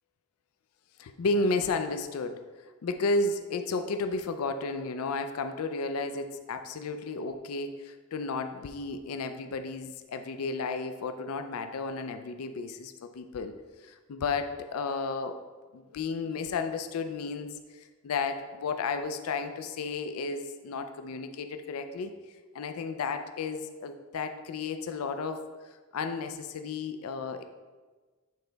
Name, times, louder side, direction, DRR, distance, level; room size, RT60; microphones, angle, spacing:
voice 1, 1.0-2.4 2.8-13.5 13.8-15.4 15.7-22.1 22.5-27.4, left 3 dB, 80° left, 8 dB, 0.4 m, -33 dB
8.3 x 3.9 x 3.3 m, 1.3 s
head